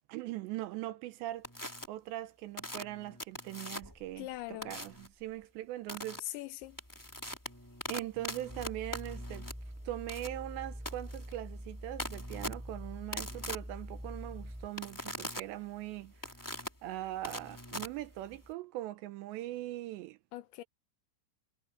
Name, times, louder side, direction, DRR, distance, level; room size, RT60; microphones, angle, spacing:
voice 1, 0.1-1.5 1.9-6.4 7.9-9.5 9.9-16.1 16.8-20.2, right 15 dB, 80° right, 2.7 m, -41 dB
sound 1, 1.4-1.9 2.6-4.1 4.6-5.1 5.9-6.2 6.6-18.5, left 1 dB, 5° left, 2.2 m, -42 dB
voice 2, 4.2-4.8 6.2-6.8 20.3-20.6, left 16 dB, 85° left, 2.8 m, -41 dB
sound 2, 8.5-14.7, equal, 10° right, 0.3 m, -44 dB
omnidirectional pair, 5.5 m